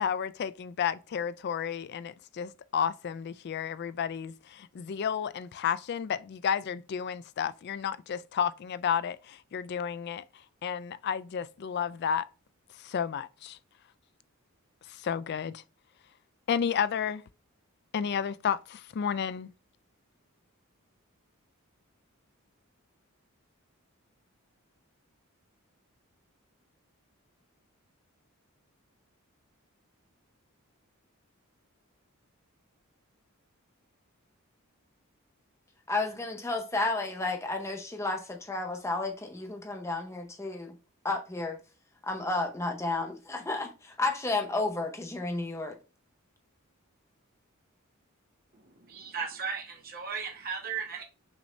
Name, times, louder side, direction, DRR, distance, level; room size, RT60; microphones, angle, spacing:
voice 1, 0.0-10.2 10.6-12.3 12.8-13.6 14.9-15.6 16.5-17.2 17.9-19.5, left 7 dB, 50° left, 0.3 m, -32 dB
voice 2, 35.9-40.7 41.0-41.6 42.0-45.8, left 2 dB, 15° left, 0.8 m, -32 dB
voice 3, 48.5-51.0, right 6 dB, 45° right, 0.8 m, -36 dB
6.1 x 2.7 x 3.1 m
head